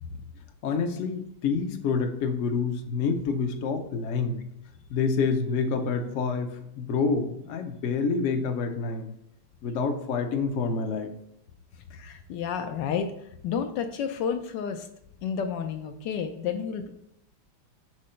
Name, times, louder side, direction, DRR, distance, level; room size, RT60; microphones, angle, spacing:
voice 1, 0.6-4.4 4.9-9.1 9.6-11.1, left 5 dB, 60° left, 5 dB, 0.8 m, -27 dB
voice 2, 11.9-13.1 13.4-14.9 15.2-16.9, left 7 dB, 75° left, 7 dB, 1.1 m, -31 dB
6.4 x 3.7 x 4.3 m, 0.78 s
omnidirectional pair, 2.1 m